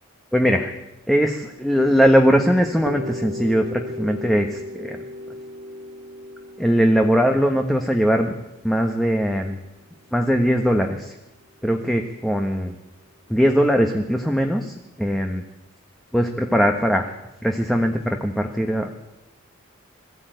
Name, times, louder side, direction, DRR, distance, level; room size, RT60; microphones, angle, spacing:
voice 1, 0.3-0.7 1.1-5.0 6.6-8.3 8.6-9.6 10.1-11.1 11.6-12.7 13.3-15.4 16.1-17.1 17.4-18.9, equal, ahead, 3 dB, 1.2 m, -20 dB
sound 1, 2.9-10.6, left 1 dB, 55° right, 1.7 m, -37 dB
21.5 x 14.0 x 9.1 m, 0.94 s
head